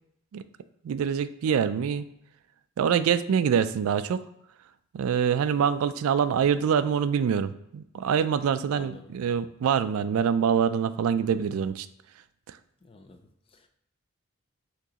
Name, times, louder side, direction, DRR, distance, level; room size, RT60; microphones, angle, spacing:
voice 1, 0.8-2.1 2.8-4.2 4.9-11.9 12.5-12.6, right 7 dB, 75° right, 0.3 m, -25 dB
voice 2, 8.7-9.1 12.8-13.2 13.5-13.7, left 3 dB, 25° left, 0.4 m, -47 dB
6.0 x 3.0 x 2.8 m
head